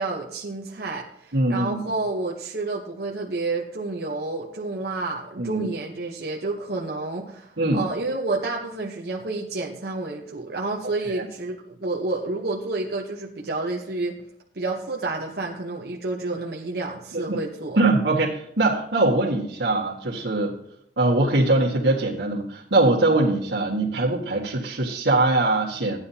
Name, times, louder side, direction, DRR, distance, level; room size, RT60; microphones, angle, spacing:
voice 1, 0.0-14.2 14.5-17.8, right 2 dB, 60° right, -1 dB, 1.0 m, -30 dB
voice 2, 1.3-1.8 5.4-5.7 7.6-7.8 10.8-11.3 17.1-17.4 17.8-20.5 21.0-26.0, right 2 dB, 85° right, -6 dB, 1.7 m, -22 dB
14.0 x 9.8 x 2.8 m, 0.74 s
head